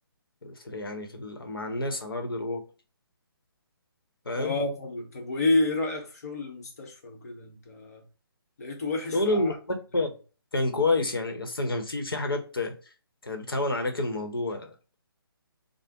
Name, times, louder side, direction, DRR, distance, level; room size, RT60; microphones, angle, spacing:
voice 1, 0.4-2.6 4.3-4.6 9.1-9.5 9.9-10.1 10.5-12.7 13.2-14.9, left 2 dB, 65° left, 0.9 m, -29 dB
voice 2, 4.3-8.0 8.6-9.6, left 2 dB, 40° left, 0.9 m, -30 dB
3.3 x 2.0 x 3.5 m
figure-of-eight pair, 140°, 13 cm